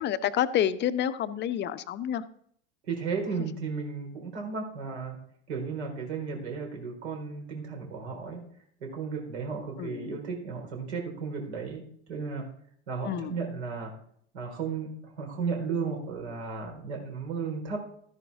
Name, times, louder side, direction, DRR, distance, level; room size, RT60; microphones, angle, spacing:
voice 1, 0.0-2.2 9.8-10.2 13.0-13.3, left 10 dB, 30° left, 14 dB, 0.8 m, -29 dB
voice 2, 2.8-5.2 5.5-8.4 8.8-11.8 12.1-12.5 12.9-13.9 14.3-17.8, right 5 dB, 65° right, 1 dB, 4.2 m, -34 dB
13.5 x 11.0 x 3.6 m, 0.64 s
figure-of-eight pair, 80°, 36 cm